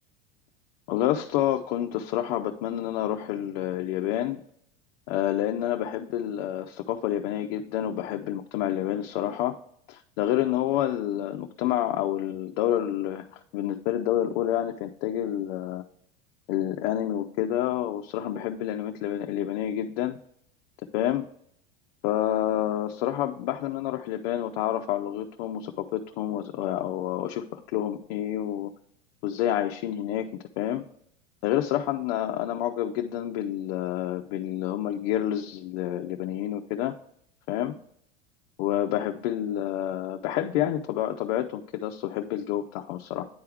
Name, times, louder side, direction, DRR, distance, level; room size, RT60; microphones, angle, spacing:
voice 1, 0.9-4.4 5.1-9.5 9.9-15.8 16.5-20.2 20.9-21.2 22.0-28.7 29.2-30.3 30.6-30.8 31.4-36.9 37.5-37.7 38.6-43.3, left 12 dB, 60° left, 5 dB, 0.6 m, -28 dB
9.4 x 3.4 x 3.4 m, 0.69 s
supercardioid pair, 120°, 37 cm